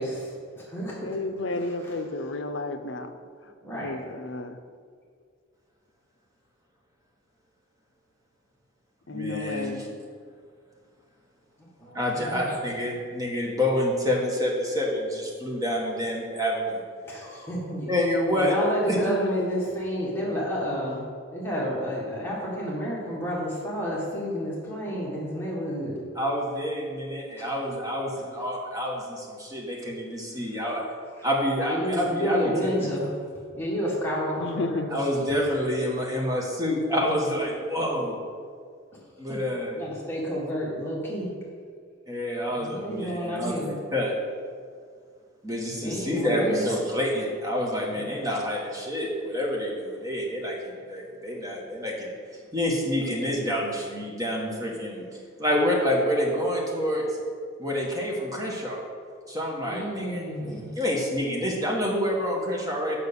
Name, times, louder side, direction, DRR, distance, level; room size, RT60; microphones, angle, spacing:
voice 1, 0.0-1.2 1.5-1.9 3.6-4.0 11.6-12.6 17.0-17.9 18.3-21.0 21.3-26.0 27.4-27.5 31.6-33.1 33.5-35.0 39.3-39.4 39.7-41.3 42.5-43.7 45.7-46.7 47.9-48.1 59.6-60.7, equal, 10° left, -5 dB, 1.6 m, -30 dB
voice 2, 1.0-3.1 3.7-4.6 9.1-9.9 19.0-19.4 34.4-34.9, left 2 dB, 60° left, 8 dB, 0.6 m, -32 dB
voice 3, 9.1-9.8 11.9-16.8 17.9-18.5 18.9-19.0 26.1-30.8 31.2-32.7 34.9-38.2 39.2-39.8 42.1-44.1 45.4-52.1 52.5-55.1 55.4-57.2 57.6-58.8 59.3-60.2 60.7-63.0, equal, 15° right, -2 dB, 1.4 m, -28 dB
6.5 x 5.8 x 6.9 m, 2.1 s
head